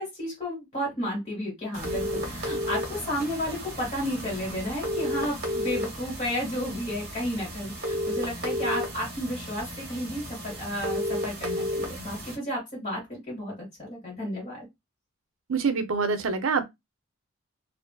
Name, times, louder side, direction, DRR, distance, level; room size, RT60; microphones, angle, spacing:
voice 1, 0.0-14.7, equal, 25° left, 1.7 m, -32 dB
sound 1, 1.7-12.3, equal, 50° right, 0.9 m, -33 dB
voice 2, 15.5-16.6, right 5 dB, 70° right, 0.5 m, -25 dB
2.5 x 2.4 x 2.2 m
head